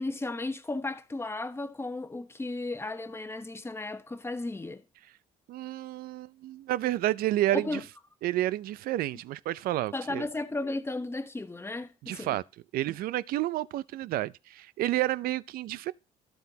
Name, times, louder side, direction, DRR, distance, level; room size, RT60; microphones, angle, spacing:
voice 1, 0.0-4.8 7.5-7.8 9.9-12.4, left 2 dB, 15° left, 1.0 m, -34 dB
voice 2, 5.5-7.8 8.2-10.3 12.0-12.4 12.7-15.9, right 15 dB, 70° right, 0.5 m, -30 dB
12.5 x 7.7 x 2.8 m
supercardioid pair, 70°, 16 cm